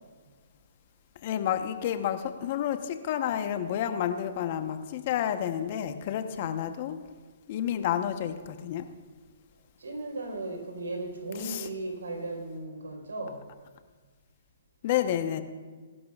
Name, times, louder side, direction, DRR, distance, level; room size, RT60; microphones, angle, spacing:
voice 1, 1.2-7.0 7.5-8.9 11.4-11.7 14.8-15.4, left 10 dB, 45° left, 8 dB, 1.0 m, -30 dB
voice 2, 6.3-6.6 9.8-13.4, right 2 dB, 90° right, 1 dB, 4.4 m, -36 dB
21.5 x 11.5 x 2.5 m, 1.5 s
hypercardioid pair, 140°, 0 cm